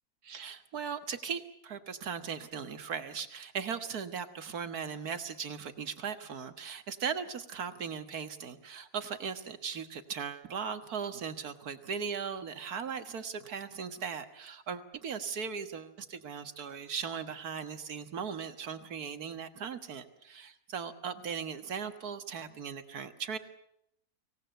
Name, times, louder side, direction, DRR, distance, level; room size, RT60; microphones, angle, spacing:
voice 1, 0.2-23.4, right 6 dB, 70° right, 9 dB, 2.0 m, -38 dB
25.5 x 18.5 x 9.2 m, 0.74 s
omnidirectional pair, 1.7 m